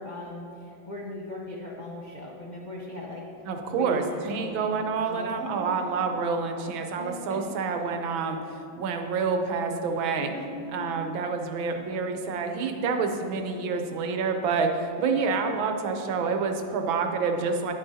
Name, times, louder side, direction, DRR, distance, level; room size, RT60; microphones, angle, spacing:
voice 1, 0.0-3.2 3.7-4.7 5.1-5.9 7.0-7.4 10.0-11.1, left 1 dB, 90° left, -4 dB, 0.4 m, -39 dB
voice 2, 3.5-8.4 8.8-10.3 10.7-17.7, right 5 dB, 75° right, 5 dB, 1.5 m, -28 dB
10.0 x 9.4 x 2.7 m, 2.7 s
omnidirectional pair, 2.2 m